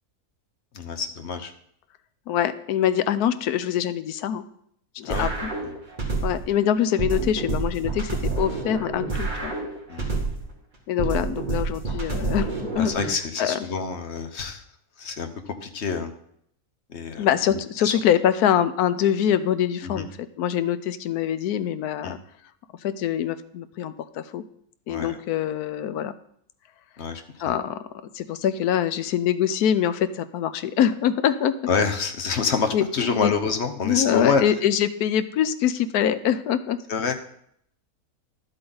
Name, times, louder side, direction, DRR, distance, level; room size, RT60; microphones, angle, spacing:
voice 1, 0.7-1.5 5.1-5.3 5.6-5.7 9.9-10.2 12.8-14.6 15.0-16.1 16.9-17.9 19.8-20.1 22.0-22.1 24.9-25.2 27.0-27.5 31.7-34.4 36.9-37.2, left 5 dB, 50° left, 7 dB, 1.1 m, -27 dB
voice 2, 2.3-4.4 4.9-5.5 6.2-9.5 10.9-12.5 12.8-12.9 13.4-13.6 17.2-20.1 20.4-22.2 22.8-24.4 24.9-26.1 27.4-27.8 28.1-31.5 32.7-32.8 33.2-33.3 33.8-36.8, left 10 dB, 90° left, 13 dB, 1.2 m, -24 dB
sound 1, 5.1-6.5 7.0-10.5 11.0-13.1, right 3 dB, 30° right, 2.2 m, -28 dB
12.0 x 7.8 x 3.9 m, 0.69 s
omnidirectional pair, 1.6 m